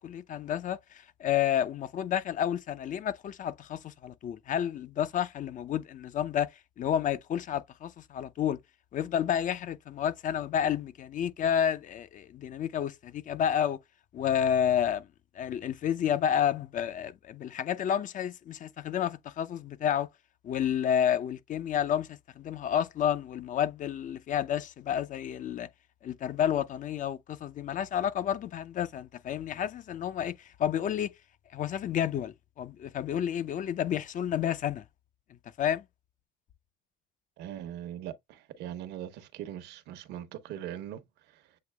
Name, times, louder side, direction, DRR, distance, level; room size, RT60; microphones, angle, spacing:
voice 1, 0.0-6.5 6.8-8.6 8.9-13.8 14.1-15.1 15.3-20.1 20.4-25.7 26.0-31.1 31.5-34.8 35.6-35.8, left 9 dB, 50° left, 0.6 m, -30 dB
voice 2, 37.4-41.6, right 11 dB, 85° right, 0.9 m, -41 dB
7.7 x 2.9 x 2.2 m
cardioid pair, 110°, 17 cm